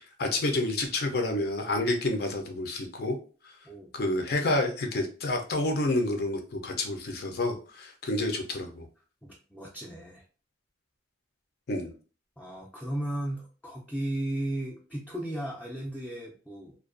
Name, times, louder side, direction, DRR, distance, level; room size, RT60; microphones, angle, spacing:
voice 1, 0.2-3.2 3.9-8.8 11.7-11.9, left 2 dB, 60° left, 4 dB, 0.5 m, -29 dB
voice 2, 9.2-10.2 12.4-16.7, right 1 dB, 5° left, -4 dB, 0.4 m, -35 dB
2.4 x 2.2 x 2.4 m, 0.38 s
head